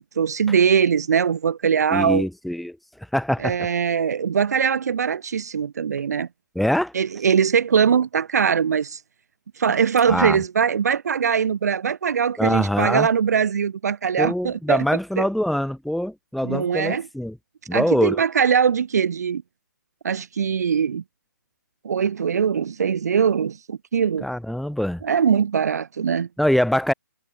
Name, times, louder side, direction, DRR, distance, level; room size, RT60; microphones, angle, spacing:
voice 1, 0.2-2.3 3.4-6.3 6.9-9.0 9.6-14.8 15.2-15.3 16.4-17.1 17.7-19.4 20.0-21.0 21.8-24.3 25.0-26.3, right 7 dB, 60° right, 0.4 m, -21 dB
voice 2, 1.9-2.8 3.1-3.5 6.5-6.9 10.1-10.4 12.4-13.1 14.2-17.4 17.7-18.2 24.2-25.0 26.4-26.9, equal, ahead, 1.1 m, -23 dB
figure-of-eight pair, 140°, 10 cm